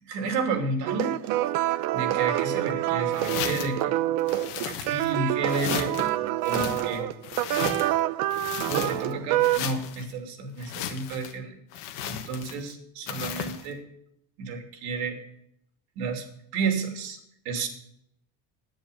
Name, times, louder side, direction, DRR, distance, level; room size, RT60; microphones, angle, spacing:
voice 1, 0.1-1.2 1.9-3.9 4.6-7.0 8.6-11.6 12.0-13.8 14.4-15.2 16.0-16.3 16.5-17.2 17.4-17.7, right 3 dB, 85° right, 4 dB, 3.0 m, -31 dB
sound 1, 0.9-9.6, right 15 dB, 60° right, 0.7 m, -26 dB
sound 2, 3.1-3.8 4.3-5.2 5.5-6.1 6.4-8.0 8.3-9.1 9.4-10.1 10.6-11.4 11.7-12.7 13.1-13.7, left 10 dB, 80° left, 1.5 m, -35 dB
10.5 x 9.9 x 6.8 m, 0.73 s
cardioid pair, 180°, 39 cm